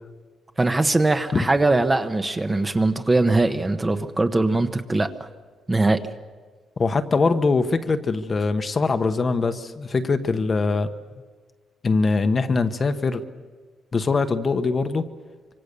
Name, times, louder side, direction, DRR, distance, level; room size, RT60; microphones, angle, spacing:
voice 1, 0.6-5.1 5.7-6.0, right 2 dB, 15° right, 8 dB, 1.0 m, -21 dB
voice 2, 6.8-10.9 11.8-13.2 13.9-15.0, left 4 dB, 30° left, 9 dB, 1.1 m, -22 dB
25.5 x 25.0 x 6.8 m, 1.5 s
cardioid pair, 155°, 0 cm